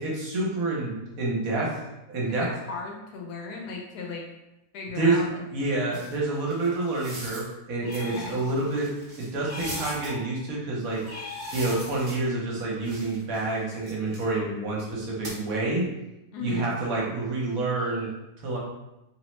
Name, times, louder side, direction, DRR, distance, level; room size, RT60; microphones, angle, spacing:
voice 1, 0.0-1.8 2.1-2.5 4.9-5.2 5.5-8.9 9.2-11.0 11.5-15.9 16.4-18.1 18.4-18.6, right 2 dB, 65° right, -3 dB, 1.1 m, -28 dB
voice 2, 2.3-4.2 4.7-5.4 8.0-8.4 16.3-16.7, left 4 dB, 85° left, 0 dB, 1.2 m, -36 dB
sound 1, 5.9-7.5 7.9-10.1 10.9-12.5 12.8-14.3 15.2-15.4, right 1 dB, 40° right, 0.7 m, -41 dB
sound 2, 7.8-8.8 9.4-10.5 11.0-12.2, left 3 dB, 50° left, 1.2 m, -40 dB
2.9 x 2.0 x 3.0 m, 0.93 s
omnidirectional pair, 1.7 m